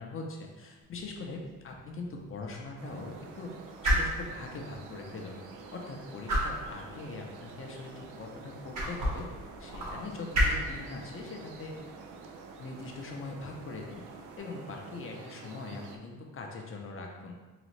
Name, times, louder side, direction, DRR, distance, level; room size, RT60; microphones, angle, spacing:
voice 1, 0.0-3.5 3.8-5.4 5.7-9.3 9.6-11.7 12.6-14.0 14.4-17.4, left 3 dB, 45° left, 1 dB, 0.7 m, -41 dB
sound 1, 0.8-14.4, equal, 65° right, 1.4 m, -35 dB
sound 2, 2.8-16.0, right 4 dB, 85° right, 0.6 m, -48 dB
4.0 x 3.1 x 3.1 m, 1.2 s
cardioid pair, 90°, 30 cm